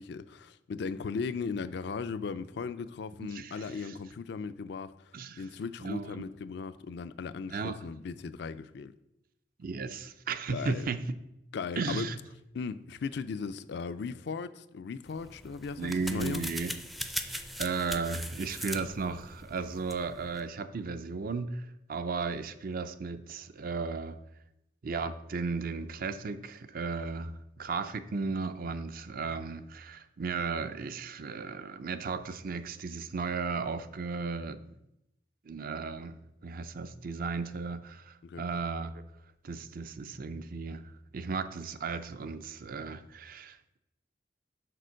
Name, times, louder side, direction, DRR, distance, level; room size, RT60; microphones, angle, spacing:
voice 1, 0.0-5.0 5.4-8.9 10.5-10.9 11.5-12.1 12.5-16.5 38.2-38.5, left 5 dB, 65° left, 0.4 m, -37 dB
voice 2, 3.2-3.9 5.1-5.4 5.8-6.3 7.5-7.8 9.6-11.0 11.8-12.2 15.8-16.8 17.2-24.2 24.8-34.6 35.4-36.2 36.4-39.0 39.4-40.8 41.1-43.8, right 4 dB, 55° right, 0.5 m, -35 dB
sound 1, 15.1-20.4, equal, ahead, 0.4 m, -40 dB
6.7 x 4.5 x 6.3 m
head